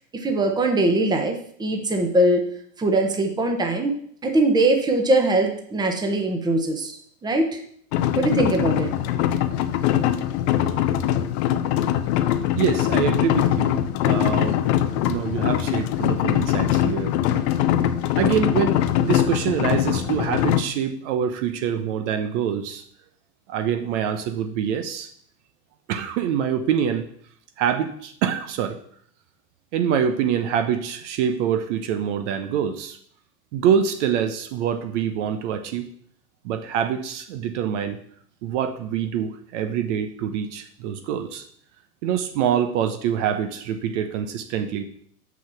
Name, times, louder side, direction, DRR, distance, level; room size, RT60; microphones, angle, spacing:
voice 1, 0.2-2.4 2.8-3.9 4.2-6.9 7.2-7.6 8.2-8.9, right 2 dB, 10° right, 4 dB, 1.1 m, -21 dB
sound 1, 7.9-20.6, left 11 dB, 45° left, 0.7 m, -22 dB
voice 2, 12.6-13.8 14.1-14.6 15.0-17.2 18.2-22.8 23.5-25.1 25.9-27.0 27.6-28.8 29.7-33.0 33.5-35.9 36.4-38.0 38.4-41.4 42.0-44.8, right 8 dB, 50° right, 7 dB, 1.0 m, -25 dB
6.2 x 5.9 x 7.1 m, 0.63 s
hypercardioid pair, 135°, 47 cm